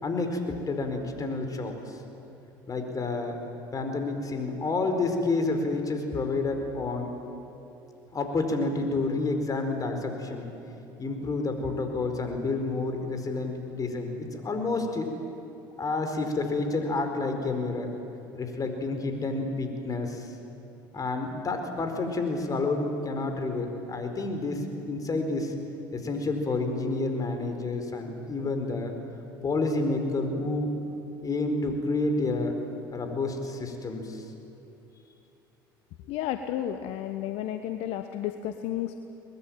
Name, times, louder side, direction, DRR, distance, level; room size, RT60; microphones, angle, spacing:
voice 1, 0.0-2.0 2.7-3.4 3.7-7.1 8.1-10.5 11.0-15.1 15.8-17.9 18.3-20.3 20.9-25.5 25.9-28.9 29.4-30.7 31.2-32.6 32.9-34.2, left 3 dB, 30° left, 5 dB, 4.5 m, -29 dB
voice 2, 36.1-38.9, left 11 dB, 65° left, 8 dB, 1.1 m, -32 dB
22.5 x 20.5 x 9.2 m, 2.9 s
hypercardioid pair, 70°, 11 cm